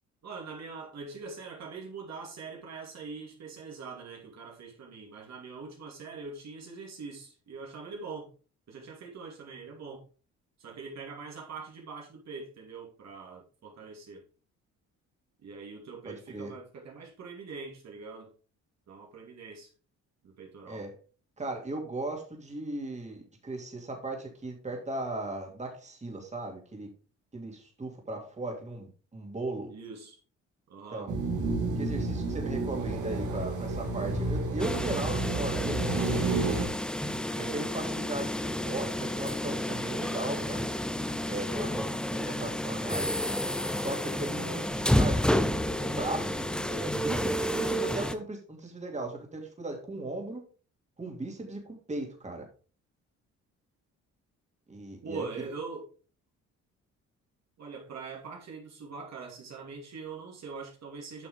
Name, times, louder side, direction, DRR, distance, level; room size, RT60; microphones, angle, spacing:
voice 1, 0.2-8.3 8.7-10.0 10.6-14.2 15.4-18.3 18.9-19.7 20.2-20.9 29.7-30.2 30.7-31.1 55.0-55.9 57.6-61.3, right 4 dB, 60° right, 2.5 m, -43 dB
voice 2, 16.0-16.5 20.7-20.9 21.4-26.9 27.3-29.7 30.9-31.1 31.8-36.3 37.4-40.7 41.3-43.2 43.7-50.4 51.0-51.6 51.9-52.5 54.7-55.3, right 2 dB, 25° right, 2.7 m, -37 dB
sound 1, 31.1-36.7, right 3 dB, 80° right, 2.2 m, -30 dB
sound 2, 34.6-48.1, left 1 dB, 5° left, 0.6 m, -30 dB
8.9 x 6.0 x 3.7 m
cardioid pair, 90°, 30 cm